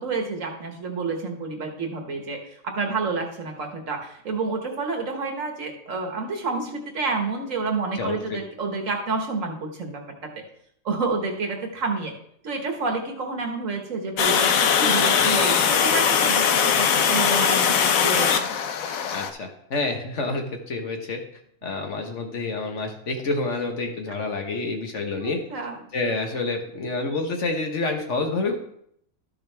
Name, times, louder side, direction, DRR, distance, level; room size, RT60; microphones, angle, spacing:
voice 1, 0.0-10.3 10.9-12.1 12.4-18.4 25.2-25.8, right 3 dB, 65° right, 3 dB, 1.7 m, -29 dB
voice 2, 8.0-8.4 19.1-21.2 21.6-25.4 25.9-28.6, left 3 dB, 60° left, 3 dB, 1.4 m, -28 dB
Water, 14.2-19.3, left 7 dB, 75° left, 1.1 m, -20 dB
12.5 x 6.4 x 3.4 m, 0.71 s
omnidirectional pair, 1.5 m